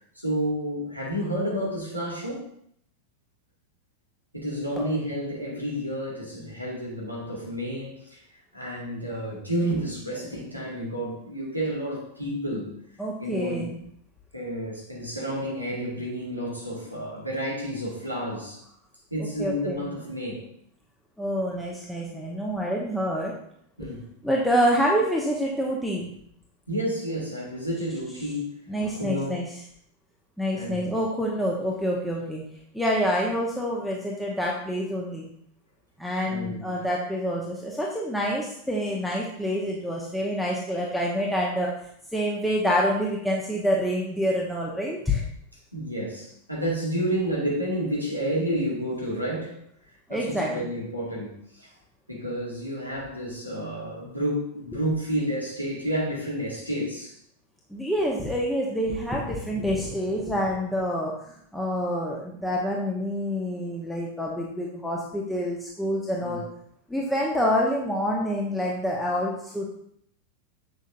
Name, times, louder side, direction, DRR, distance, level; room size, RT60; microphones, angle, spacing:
voice 1, 0.2-2.5 4.3-8.2 8.5-12.7 13.2-13.7 14.3-18.6 19.1-20.5 23.8-24.0 26.7-28.6 28.9-29.4 30.5-31.0 36.2-36.8 45.7-49.6 50.1-51.7 52.1-57.1 66.2-66.4, equal, 90° left, -4 dB, 2.0 m, -30 dB
voice 2, 13.0-13.8 19.4-19.9 21.2-23.3 23.8-23.9 24.2-26.1 28.7-29.5 30.4-32.4 32.7-35.3 36.0-41.7 42.1-45.2 50.1-50.7 57.7-66.4 66.9-69.7, equal, ahead, -3 dB, 0.9 m, -27 dB
7.2 x 6.4 x 2.6 m, 0.69 s
figure-of-eight pair, 90°, 0 cm